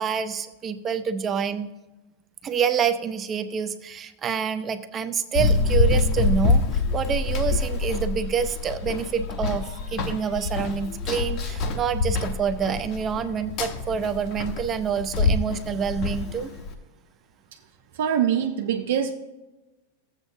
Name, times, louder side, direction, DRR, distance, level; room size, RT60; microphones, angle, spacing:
voice 1, 0.0-1.7 2.4-16.5, right 7 dB, 20° right, 11 dB, 0.5 m, -27 dB
Run, 5.3-16.7, left 3 dB, 35° left, 0.8 m, -25 dB
voice 2, 17.9-19.1, right 9 dB, 65° right, 4 dB, 0.6 m, -24 dB
14.0 x 8.1 x 2.7 m, 1.1 s
supercardioid pair, 170°, 0 cm